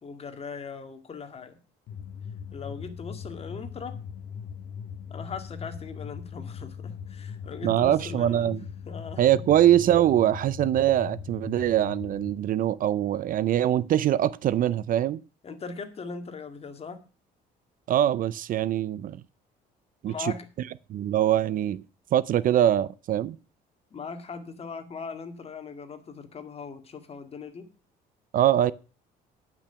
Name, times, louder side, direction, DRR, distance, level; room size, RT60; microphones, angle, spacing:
voice 1, 0.0-1.6 2.5-4.0 5.1-8.6 8.9-9.4 10.2-10.3 15.4-17.0 20.1-20.5 23.9-27.7, left 5 dB, 35° left, 2.0 m, -39 dB
sound 1, 1.9-12.3, left 7 dB, 60° left, 1.0 m, -40 dB
voice 2, 7.6-8.6 9.2-15.2 17.9-19.2 20.0-20.3 20.9-21.8 22.1-23.4 28.3-28.7, right 11 dB, 55° right, 0.5 m, -23 dB
10.5 x 6.0 x 6.8 m
cardioid pair, 110°, 17 cm